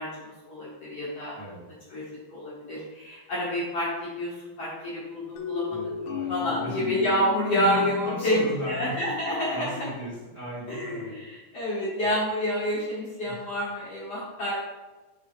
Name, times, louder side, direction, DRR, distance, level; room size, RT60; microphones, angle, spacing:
voice 1, 0.0-1.3 1.9-2.0 2.3-9.9 10.7-14.5, left 1 dB, 65° left, -9 dB, 1.5 m, -29 dB
voice 2, 1.3-1.7 5.7-6.9 7.7-8.9 9.5-11.1 13.2-13.3, right 1 dB, 80° right, -10 dB, 0.7 m, -36 dB
sound 1, 5.4-10.0, left 8 dB, 85° left, 2.5 m, -35 dB
8.8 x 4.1 x 3.6 m, 1.2 s
omnidirectional pair, 5.9 m